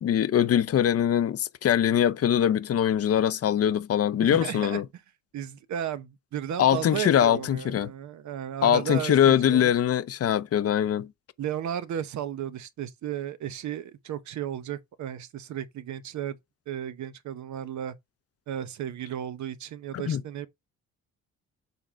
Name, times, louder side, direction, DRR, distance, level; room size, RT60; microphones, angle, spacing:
voice 1, 0.0-4.8 6.6-7.9 8.6-11.1 19.9-20.2, left 10 dB, 50° left, 0.7 m, -22 dB
voice 2, 4.2-4.8 5.3-9.7 11.4-16.4 16.7-17.9 18.5-20.5, right 10 dB, 70° right, 0.9 m, -34 dB
6.9 x 3.7 x 4.4 m
cardioid pair, 90°, 30 cm